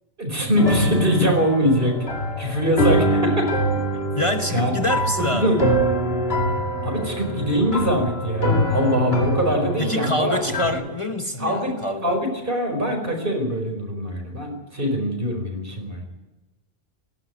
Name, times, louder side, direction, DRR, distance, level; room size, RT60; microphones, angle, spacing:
voice 1, 0.2-2.0 2.4-3.3 4.5-4.7 5.2-5.6 6.8-10.8 11.4-11.7 12.0-16.0, equal, 60° right, 3 dB, 5.3 m, -23 dB
sound 1, 0.6-10.7, equal, 75° left, 2.8 m, -24 dB
voice 2, 3.9-5.6 9.8-12.2, left 1 dB, 30° left, 5 dB, 1.2 m, -26 dB
17.5 x 15.5 x 9.6 m, 1.1 s
omnidirectional pair, 1.0 m